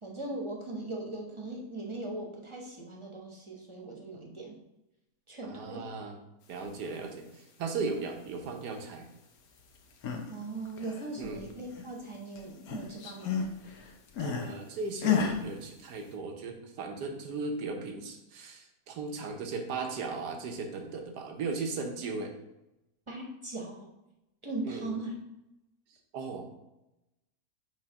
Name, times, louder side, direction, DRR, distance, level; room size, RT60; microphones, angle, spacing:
voice 1, 0.0-4.6 5.3-5.9 10.3-13.4 23.1-23.9 24.4-25.1, right 2 dB, 20° right, 0 dB, 0.9 m, -39 dB
voice 2, 5.4-6.2 6.5-9.1 11.2-11.4 14.2-22.3 24.6-24.9 26.1-26.5, right 4 dB, 85° right, 4 dB, 1.5 m, -37 dB
sound 1, 9.8-10.3 10.7-12.1 12.4-14.5 15.0-15.4, left 7 dB, 70° left, 1.2 m, -32 dB
6.4 x 3.0 x 5.7 m, 0.92 s
omnidirectional pair, 1.7 m